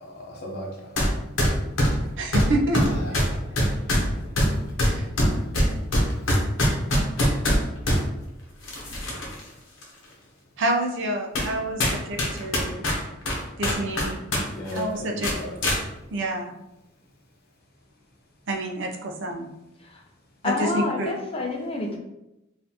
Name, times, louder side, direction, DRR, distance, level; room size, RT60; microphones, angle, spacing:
voice 1, 0.0-0.9 2.9-3.4 4.0-4.1 14.5-15.6, left 1 dB, 55° left, 0 dB, 0.8 m, -35 dB
sound 1, 1.0-1.1 1.4-8.0 8.6-9.4 9.8-9.9 10.6-10.7 11.3-11.5 11.8-14.4 14.7-14.8 15.2-15.8, equal, 75° left, 0.9 m, -22 dB
voice 2, 2.2-3.0 4.8-5.1 7.9-8.0 10.6-12.9 13.6-14.2 14.7-15.3 16.1-16.5 18.5-19.5 20.4-21.1, right 1 dB, 65° right, 2 dB, 0.6 m, -28 dB
voice 3, 20.4-22.0, left 2 dB, 30° left, 1 dB, 0.6 m, -28 dB
4.1 x 2.6 x 2.8 m, 0.91 s
head